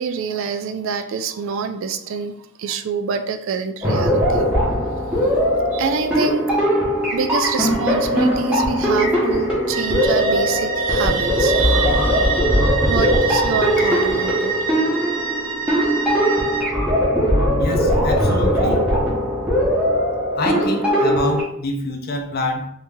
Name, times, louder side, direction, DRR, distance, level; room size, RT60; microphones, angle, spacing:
voice 1, 0.0-4.5 5.2-5.3 5.7-6.5 7.1-14.6, right 6 dB, 60° right, 7 dB, 0.3 m, -26 dB
sound 1, 3.8-21.4, equal, 5° right, 0.9 m, -19 dB
sound 2, 9.7-16.6, right 5 dB, 35° right, 0.9 m, -27 dB
voice 2, 17.6-18.9 20.3-22.7, left 2 dB, 45° left, 4 dB, 0.5 m, -26 dB
2.8 x 2.8 x 3.6 m, 0.70 s
head